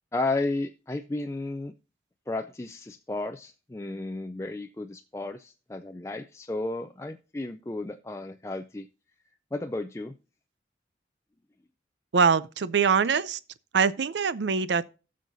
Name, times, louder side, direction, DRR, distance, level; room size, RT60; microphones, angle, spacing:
voice 1, 0.1-1.7 2.3-8.9 9.5-10.1, left 2 dB, 15° left, 0.4 m, -33 dB
voice 2, 12.1-13.4 13.7-14.9, right 6 dB, 80° right, 0.5 m, -23 dB
18.5 x 6.4 x 2.6 m
head